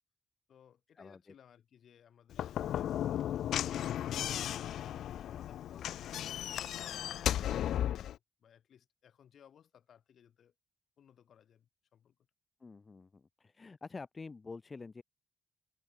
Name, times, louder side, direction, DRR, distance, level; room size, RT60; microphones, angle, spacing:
voice 1, 0.5-4.5 5.0-10.5 11.0-12.2, left 9 dB, 65° left, 6.5 m, -62 dB
Slam / Knock, 2.3-8.2, left 11 dB, 90° left, 0.6 m, -35 dB
voice 2, 12.6-15.0, left 4 dB, 30° left, 1.2 m, -47 dB
cardioid pair, 125°, 0 cm